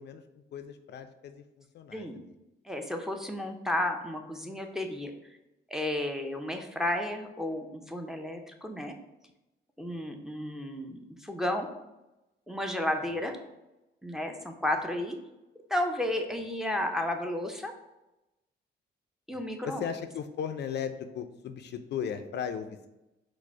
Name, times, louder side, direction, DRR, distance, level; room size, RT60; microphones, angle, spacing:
voice 1, 0.0-2.4 9.9-10.0 19.3-22.9, left 7 dB, 60° left, 9 dB, 0.4 m, -37 dB
voice 2, 2.7-5.1 5.7-8.9 9.8-11.7 12.5-13.4 14.0-15.2 15.7-17.7 19.3-19.8, left 1 dB, ahead, 3 dB, 0.5 m, -32 dB
4.8 x 2.1 x 4.5 m, 0.96 s
cardioid pair, 90°, 20 cm